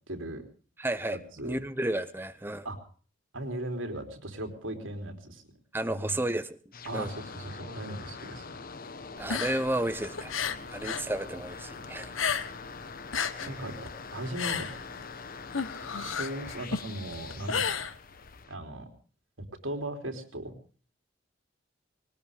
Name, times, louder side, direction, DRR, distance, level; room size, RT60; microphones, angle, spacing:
voice 1, 0.1-0.4 1.1-1.6 2.6-2.8 3.3-5.5 5.9-6.2 6.9-8.6 13.5-15.0 15.9-17.9 18.5-18.9 19.4-20.5, right 1 dB, 80° right, 5 dB, 3.5 m, -38 dB
voice 2, 0.8-1.2 1.4-2.7 5.7-6.6 6.9-7.1 9.2-10.3 10.7-12.2 13.4-13.5, right 1 dB, 10° right, 11 dB, 0.7 m, -32 dB
sound 1, 6.7-18.5, left 4 dB, 50° left, 1.2 m, -44 dB
sound 2, 9.2-11.1 11.4-12.7 13.0-18.4, left 6 dB, 90° left, 1.2 m, -33 dB
20.5 x 19.0 x 3.5 m, 0.40 s
head